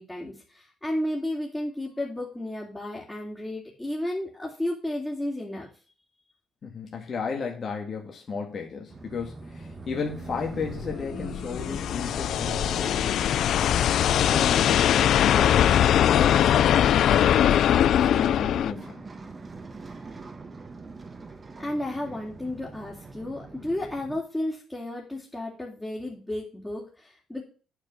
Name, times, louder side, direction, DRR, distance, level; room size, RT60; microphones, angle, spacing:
voice 1, 0.0-5.7 21.6-27.4, left 1 dB, 10° left, 2.8 m, -33 dB
voice 2, 6.6-13.2 14.3-17.4 17.8-19.0, left 5 dB, 45° left, 2.0 m, -34 dB
sound 1, 8.9-24.2, right 4 dB, 30° right, 1.3 m, -43 dB
sound 2, 10.5-18.7, left 10 dB, 70° left, 0.4 m, -21 dB
9.4 x 4.8 x 6.9 m
cardioid pair, 90°, 0 cm